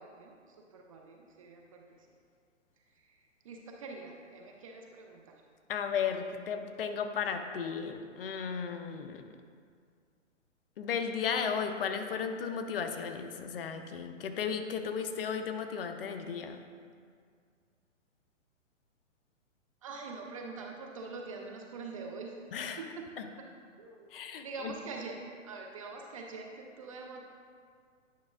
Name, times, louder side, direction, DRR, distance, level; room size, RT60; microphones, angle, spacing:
voice 1, 0.0-1.8 2.8-5.4 19.8-22.3 22.8-23.1 23.4-23.5 23.8-24.1 24.4-27.2, right 4 dB, 30° right, 1 dB, 0.4 m, -44 dB
voice 2, 5.7-9.3 10.8-16.6 22.5-22.8 23.2-23.3 24.1-24.7, left 6 dB, 50° left, 7 dB, 0.6 m, -35 dB
9.3 x 5.9 x 2.4 m, 2.1 s
hypercardioid pair, 140°, 38 cm